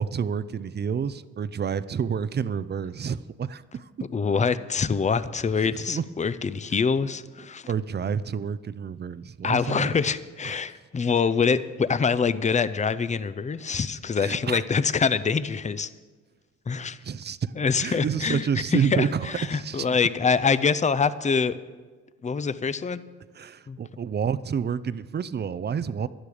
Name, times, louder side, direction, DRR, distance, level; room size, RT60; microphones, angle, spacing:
voice 1, 0.0-3.9 5.6-6.0 7.7-9.9 10.4-10.6 14.2-14.6 17.0-19.9 23.3-26.1, right 7 dB, 35° right, 16 dB, 0.5 m, -29 dB
voice 2, 4.1-7.7 9.4-15.9 16.7-17.0 17.6-18.5 18.7-21.6 22.2-23.0 23.7-23.8, left 5 dB, 25° left, 15 dB, 0.6 m, -25 dB
16.5 x 11.5 x 5.0 m, 1.4 s
cardioid pair, 90°, 30 cm